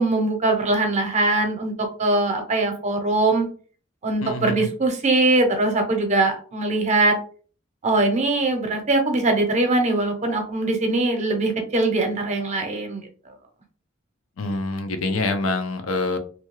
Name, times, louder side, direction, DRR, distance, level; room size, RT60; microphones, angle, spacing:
voice 1, 0.0-1.7 2.0-3.5 4.0-7.2 7.8-13.0, right 2 dB, 35° right, 5 dB, 0.6 m, -21 dB
voice 2, 4.2-4.7 14.4-16.2, left 2 dB, 85° left, 7 dB, 0.5 m, -26 dB
2.7 x 2.2 x 3.1 m, 0.41 s
head